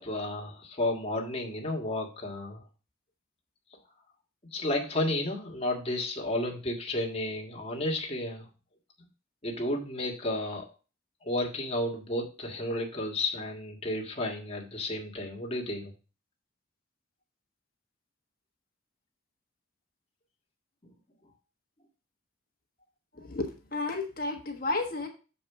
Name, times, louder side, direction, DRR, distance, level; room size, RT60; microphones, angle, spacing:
voice 1, 0.0-2.6 4.5-8.5 9.4-10.7 11.2-15.9 20.8-20.9, left 1 dB, 30° left, 0 dB, 1.6 m, -32 dB
voice 2, 23.1-25.1, left 2 dB, 50° left, 3 dB, 1.3 m, -32 dB
7.0 x 4.7 x 4.6 m, 0.34 s
head